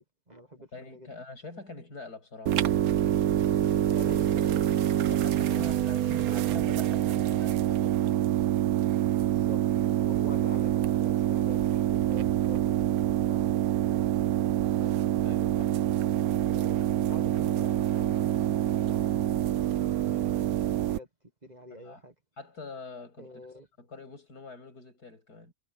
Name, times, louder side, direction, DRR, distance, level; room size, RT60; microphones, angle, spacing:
voice 1, 0.0-1.1 3.7-4.6 9.2-14.4 16.5-20.2 20.5-21.1 21.4-22.1 23.2-23.7, right 1 dB, 25° right, 1.7 m, -47 dB
voice 2, 0.7-3.4 4.9-8.2 14.6-15.7 21.8-22.0 22.4-23.3 23.8-25.5, left 3 dB, 80° left, 8.5 m, -45 dB
sound 1, 2.5-21.0, right 12 dB, 70° right, 1.2 m, -26 dB
omnidirectional pair, 1.7 m